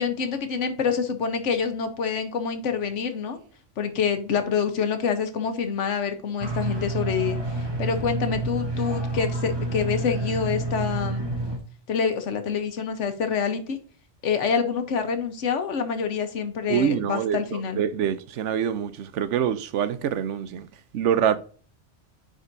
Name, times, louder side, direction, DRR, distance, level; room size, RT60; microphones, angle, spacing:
voice 1, 0.0-3.4 3.8-11.3 11.9-13.8 14.2-17.8, left 6 dB, 90° left, 1.2 m, -27 dB
sound 1, 6.4-11.6, right 2 dB, 25° right, 0.9 m, -29 dB
voice 2, 16.7-20.7 20.9-21.4, right 9 dB, 85° right, 0.9 m, -25 dB
9.7 x 3.9 x 2.6 m
omnidirectional pair, 1.2 m